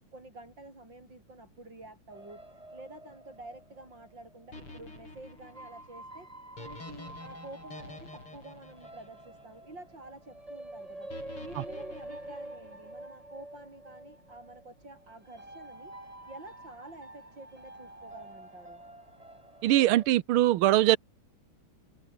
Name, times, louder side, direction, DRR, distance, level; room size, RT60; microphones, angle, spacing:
voice 1, 0.1-2.4 2.7-6.3 6.6-11.1 11.4-18.8, right 2 dB, 55° right, 8.7 m, -49 dB
sound 1, 2.1-4.6 5.4-20.1, right 1 dB, 15° right, 4.0 m, -48 dB
sound 2, 4.5-9.8 11.1-13.0, left 2 dB, 80° left, 9.2 m, -48 dB
voice 2, 19.6-21.0, right 14 dB, 80° right, 1.6 m, -22 dB
omnidirectional pair, 2.4 m